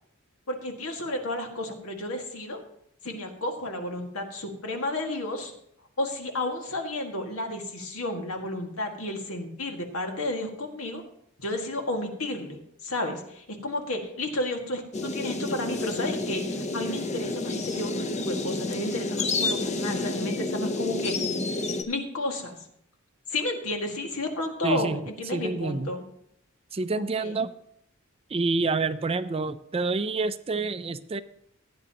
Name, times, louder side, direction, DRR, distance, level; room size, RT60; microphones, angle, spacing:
voice 1, 0.5-2.6 3.0-5.5 6.0-11.0 11.4-21.1 21.5-22.6 23.3-26.0 26.9-27.3, left 1 dB, 85° left, 3 dB, 1.9 m, -32 dB
sound 1, 14.9-21.8, left 2 dB, 35° left, 0.8 m, -30 dB
voice 2, 24.6-25.9 26.7-27.5 28.3-31.2, right 3 dB, 25° right, 12 dB, 0.4 m, -28 dB
15.5 x 9.6 x 2.9 m, 0.72 s
head